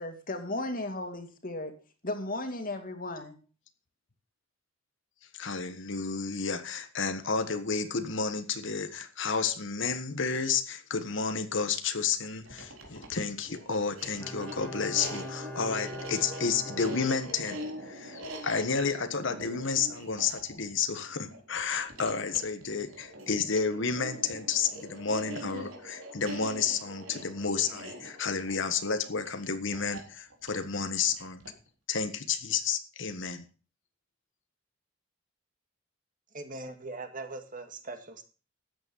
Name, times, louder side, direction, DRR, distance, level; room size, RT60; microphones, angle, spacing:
voice 1, 0.0-1.7 2.0-3.4, left 2 dB, 45° left, 2.5 m, -35 dB
voice 2, 5.3-31.4 31.9-33.5, left 5 dB, 65° left, 1.4 m, -31 dB
sound 1, 12.4-31.7, equal, 85° right, 3.8 m, -43 dB
Bowed string instrument, 14.2-17.9 18.2-18.3, left 1 dB, 10° left, 2.1 m, -43 dB
voice 3, 36.3-38.2, right 3 dB, 45° right, 2.1 m, -40 dB
13.5 x 9.0 x 5.5 m
head